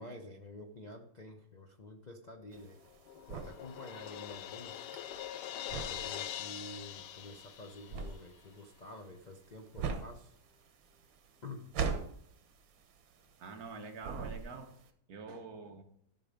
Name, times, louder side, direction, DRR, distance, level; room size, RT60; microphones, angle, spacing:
voice 1, 0.0-2.8 3.3-4.9 5.8-10.3 11.4-11.7, left 2 dB, 40° left, 3 dB, 0.6 m, -49 dB
Crash cymbal, 2.5-8.2, left 11 dB, 75° left, 1.2 m, -43 dB
sound 1, 2.5-13.7 14.0-14.8, right 5 dB, 85° right, 1.7 m, -40 dB
voice 2, 13.4-14.8 15.1-15.8, right 4 dB, 55° right, 5 dB, 1.5 m, -45 dB
13.5 x 5.7 x 5.1 m, 0.70 s
omnidirectional pair, 2.0 m